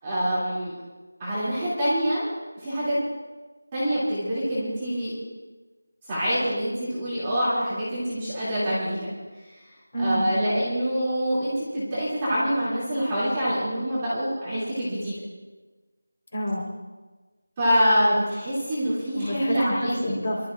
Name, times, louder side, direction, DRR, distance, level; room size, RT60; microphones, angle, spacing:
voice 1, 0.0-0.7 1.2-2.3 2.6-2.9 3.7-5.1 6.1-9.1 9.9-15.1 17.6-19.9, equal, 10° right, -11 dB, 2.7 m, -25 dB
voice 2, 9.9-10.3 16.3-16.7 19.1-20.5, equal, 30° left, -2 dB, 4.2 m, -28 dB
30.0 x 13.0 x 2.5 m, 1.3 s
figure-of-eight pair, 180°, 0 cm